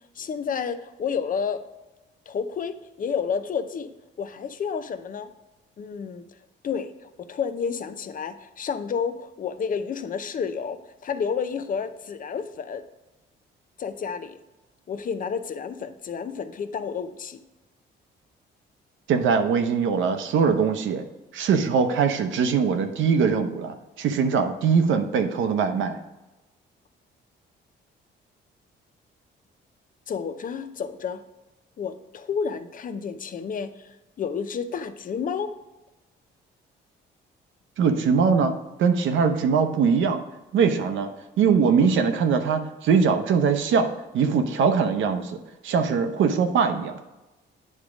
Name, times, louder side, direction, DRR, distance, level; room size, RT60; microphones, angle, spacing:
voice 1, 0.2-1.6 2.3-3.9 4.2-5.3 5.8-6.3 6.6-12.8 13.8-14.4 14.9-17.4 30.1-31.2 31.8-33.9 34.2-35.5, left 6 dB, 45° left, 11 dB, 0.6 m, -30 dB
voice 2, 19.1-21.0 21.3-26.0 37.8-38.5 38.8-40.2 40.5-41.1 41.4-43.9 44.1-46.9, right 6 dB, 75° right, 7 dB, 0.8 m, -22 dB
8.7 x 3.6 x 4.9 m, 1.1 s
cardioid pair, 90°, 20 cm